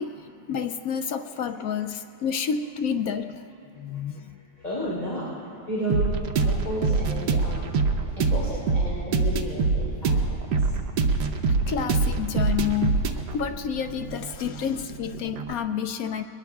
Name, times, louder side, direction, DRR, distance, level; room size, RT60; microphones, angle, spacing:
voice 1, 0.0-3.5 3.7-4.4 11.7-16.2, left 7 dB, 70° left, 8 dB, 0.8 m, -29 dB
voice 2, 4.6-5.3 5.7-6.2 6.4-7.7 8.2-10.5, equal, 25° left, -7 dB, 3.6 m, -32 dB
sound 1, 5.9-15.5, right 4 dB, 75° right, 1.4 m, -25 dB
22.0 x 20.5 x 2.3 m, 2.6 s
omnidirectional pair, 1.9 m